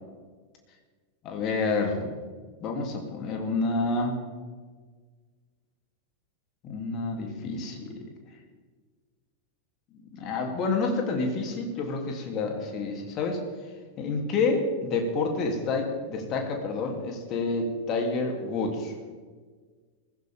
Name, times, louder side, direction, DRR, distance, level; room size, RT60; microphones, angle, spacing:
voice 1, 1.2-2.1 2.6-4.2 6.6-7.8 10.2-13.4 14.0-18.9, left 3 dB, 35° left, 2 dB, 3.1 m, -28 dB
20.5 x 16.0 x 3.7 m, 1.5 s
figure-of-eight pair, 90°, 0 cm